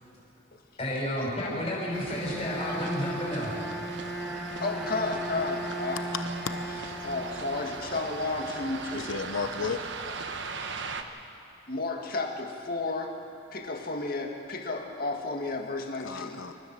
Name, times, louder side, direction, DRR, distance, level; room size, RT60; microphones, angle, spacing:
voice 1, 0.8-3.7 7.0-7.1, left 1 dB, 30° left, -5 dB, 5.4 m, -31 dB
sound 1, 1.9-11.0, right 4 dB, 60° right, 1.1 m, -39 dB
Bowed string instrument, 2.1-8.1, right 1 dB, ahead, 1.5 m, -37 dB
voice 2, 4.6-6.0 7.0-9.1 10.6-10.8 11.7-13.2 13.5-16.4, left 3 dB, 45° left, 2 dB, 2.0 m, -32 dB
voice 3, 6.1-6.8 8.9-9.8 16.0-16.5, left 5 dB, 85° left, 8 dB, 1.0 m, -34 dB
26.5 x 14.0 x 7.5 m, 2.9 s
head